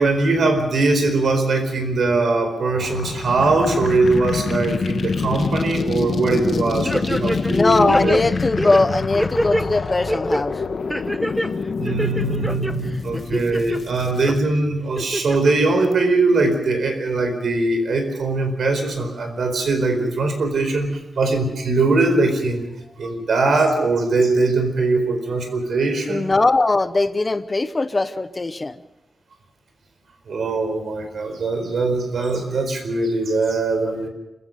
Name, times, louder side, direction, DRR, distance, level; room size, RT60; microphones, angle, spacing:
voice 1, 0.0-8.1 11.8-22.7 23.0-26.3 30.3-34.1, right 3 dB, 75° right, 6 dB, 4.6 m, -21 dB
sound 1, 2.7-14.4, left 5 dB, 55° left, 1.1 m, -26 dB
sound 2, 6.8-7.6 7.9-9.7 10.1-10.4 10.9-11.5 11.8-12.7 13.1-13.8 14.2-14.3 15.0-15.5 15.9-16.0, equal, 5° right, 1.0 m, -25 dB
voice 2, 7.5-10.5 26.1-28.8, left 2 dB, 25° left, 12 dB, 0.8 m, -20 dB
27.0 x 15.5 x 6.9 m, 0.98 s
wide cardioid pair, 175°, 0 cm